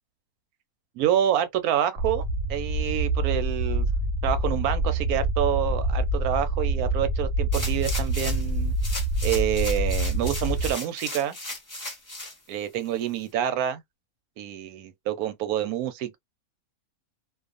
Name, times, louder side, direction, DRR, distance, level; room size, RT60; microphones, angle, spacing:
voice 1, 1.0-2.2 2.5-3.9 4.2-8.7 9.2-11.4 12.5-13.8 14.4-16.2, right 11 dB, 85° right, 1.1 m, -27 dB
sound 1, 2.0-10.7, right 1 dB, 70° right, 0.4 m, -26 dB
sound 2, 7.5-8.5 8.8-12.3 12.8-12.9, left 2 dB, 15° left, 0.8 m, -36 dB
2.4 x 2.3 x 2.4 m
omnidirectional pair, 1.5 m